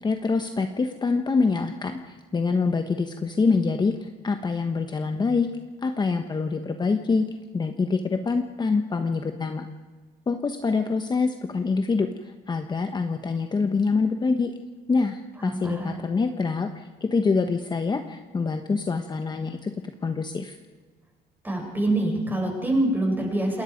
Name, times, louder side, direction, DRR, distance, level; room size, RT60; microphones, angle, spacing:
voice 1, 0.0-5.5 5.8-7.2 7.5-9.7 10.3-14.5 14.9-19.7 20.0-20.6, left 4 dB, 25° left, 6 dB, 1.2 m, -25 dB
voice 2, 15.4-16.1 21.4-23.6, right 1 dB, 10° right, 0 dB, 7.9 m, -25 dB
28.0 x 20.0 x 5.3 m, 1.4 s
cardioid pair, 110°, 17 cm